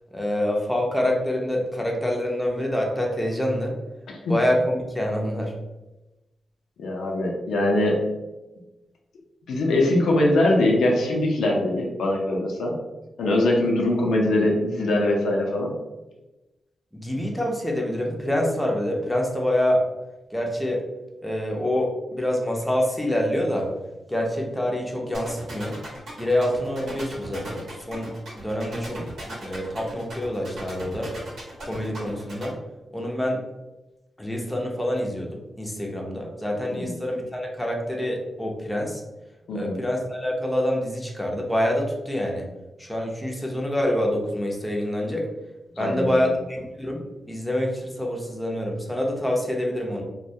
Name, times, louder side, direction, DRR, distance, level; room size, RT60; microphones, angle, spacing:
voice 1, 0.1-3.8 4.3-5.5 16.9-19.8 20.3-20.8 21.2-23.7 24.1-25.8 26.2-29.1 29.4-31.1 31.6-32.6 32.9-33.4 34.2-39.0 39.5-42.4 42.8-45.3 45.7-50.0, left 1 dB, 5° left, -1 dB, 0.5 m, -26 dB
voice 2, 6.8-8.0 9.5-12.7 13.2-15.7 36.7-37.0 39.5-39.7 45.8-46.3, left 1 dB, 90° left, 0 dB, 0.5 m, -22 dB
sound 1, 25.1-32.5, right 1 dB, 85° right, 0.9 m, -38 dB
2.2 x 2.2 x 2.7 m, 1.0 s
cardioid pair, 80°, 0 cm